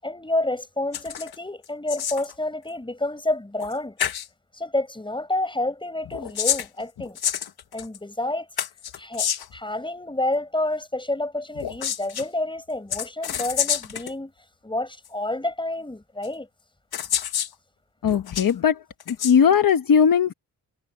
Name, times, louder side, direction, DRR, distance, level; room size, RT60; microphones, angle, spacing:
voice 1, 0.0-4.0 4.5-7.2 7.7-8.5 9.0-14.3 14.6-16.5, left 2 dB, 15° left, 7.8 m, -29 dB
sound 1, 0.9-1.4 1.6-2.3 3.6-3.7 4.0-4.3 6.0-8.0 8.6-9.6 11.5-12.3 12.9-14.1 15.0-15.1 16.2-16.3 16.9-17.5 18.0-18.5 19.0-19.3, left 9 dB, 85° left, 1.3 m, -28 dB
voice 2, 18.0-18.8 19.1-20.3, left 7 dB, 65° left, 1.2 m, -18 dB
wide cardioid pair, 125°, 37 cm